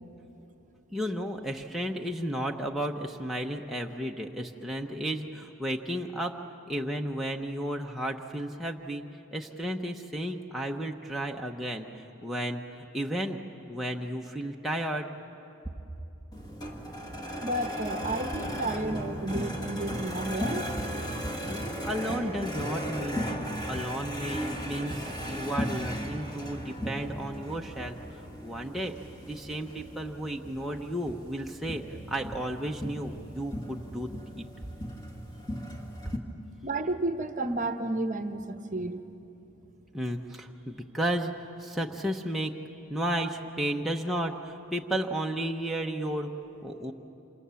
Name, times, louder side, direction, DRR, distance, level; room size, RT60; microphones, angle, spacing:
voice 1, 0.9-6.3 6.6-9.0 9.3-11.9 12.2-12.6 12.9-13.4 13.7-15.1 21.5-23.4 23.7-27.9 28.4-28.9 29.2-31.8 32.1-34.4 39.9-41.3 41.6-42.5 42.9-46.3 46.6-46.9, right 1 dB, ahead, -1 dB, 0.8 m, -33 dB
sound 1, 16.3-36.2, equal, 20° left, 1.6 m, -36 dB
voice 2, 17.4-20.7 36.6-39.0, right 2 dB, 35° right, 8 dB, 0.9 m, -32 dB
27.0 x 26.0 x 7.0 m, 3.0 s
head